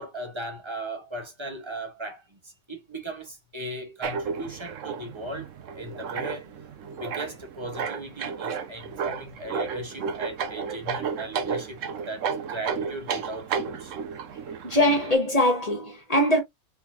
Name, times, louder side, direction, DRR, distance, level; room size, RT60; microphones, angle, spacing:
voice 1, 0.0-6.4 7.0-11.8 12.1-14.0, right 1 dB, 20° right, 1.3 m, -37 dB
sound 1, 4.0-15.1, right 6 dB, 65° right, 1.1 m, -33 dB
voice 2, 14.6-16.4, left 1 dB, 25° left, 1.7 m, -22 dB
4.4 x 4.0 x 2.8 m
omnidirectional pair, 1.5 m